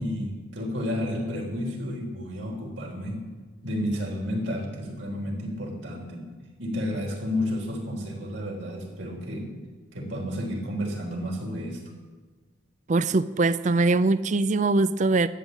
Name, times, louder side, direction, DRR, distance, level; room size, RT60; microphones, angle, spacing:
voice 1, 0.0-3.2 3.6-6.2 6.6-9.5 9.9-11.8, left 1 dB, 70° right, -1 dB, 3.8 m, -31 dB
voice 2, 12.9-15.3, right 3 dB, 40° right, 15 dB, 0.4 m, -22 dB
13.0 x 9.1 x 8.3 m, 1.3 s
head